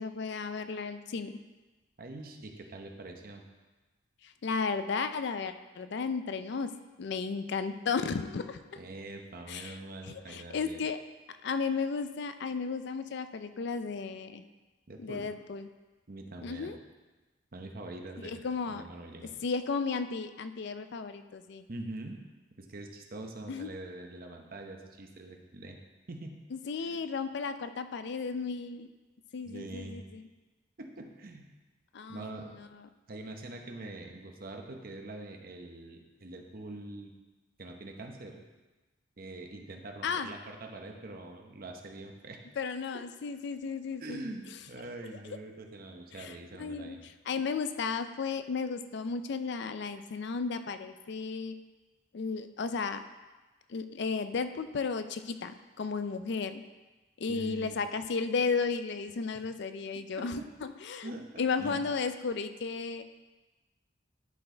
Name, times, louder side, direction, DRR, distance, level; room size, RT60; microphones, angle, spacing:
voice 1, 0.0-1.4 4.2-6.7 7.0-8.8 9.5-9.8 10.3-11.0 11.4-14.4 15.0-15.7 16.4-16.8 18.2-18.8 19.4-21.7 23.5-23.7 26.5-28.9 29.3-30.2 31.9-32.4 40.0-40.3 42.6-44.2 45.2-45.4 46.2-47.0 47.3-51.6 52.1-53.0 53.7-56.6 57.2-61.1 61.4-63.0, left 5 dB, 60° left, 10 dB, 0.4 m, -34 dB
voice 2, 2.0-3.4 8.8-10.8 14.9-15.3 16.1-16.7 17.5-19.3 21.7-22.2 22.6-25.8 26.1-26.3 26.8-27.0 29.4-30.1 30.8-31.4 32.1-32.5 33.1-37.1 37.6-38.4 39.2-42.4 44.0-47.0 57.3-57.8 59.9-60.5 61.0-61.8, right 2 dB, 50° right, 3 dB, 0.8 m, -44 dB
11.0 x 4.4 x 4.4 m, 1.2 s
head